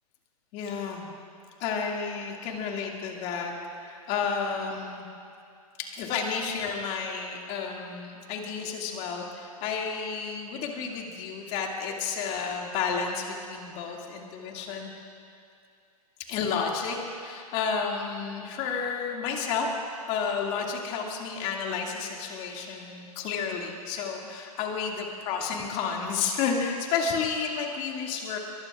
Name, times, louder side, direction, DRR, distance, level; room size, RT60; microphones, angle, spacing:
voice 1, 0.5-1.1 1.6-5.1 5.8-14.9 16.3-19.7 20.1-28.4, left 5 dB, 30° left, 0 dB, 2.2 m, -31 dB
24.0 x 22.0 x 2.4 m, 2.4 s
hypercardioid pair, 140°, 20 cm